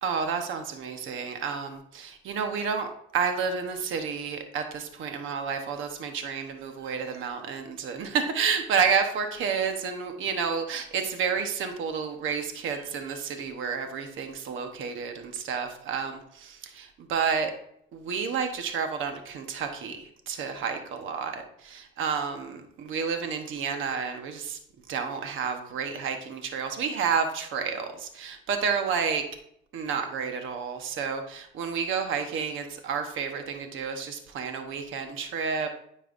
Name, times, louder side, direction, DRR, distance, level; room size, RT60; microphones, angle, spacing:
voice 1, 0.0-2.9 3.1-17.5 17.9-24.6 24.9-29.2 29.7-35.7, right 6 dB, 80° right, 6 dB, 1.0 m, -30 dB
9.5 x 5.4 x 2.5 m, 0.70 s
cardioid pair, 90°, 20 cm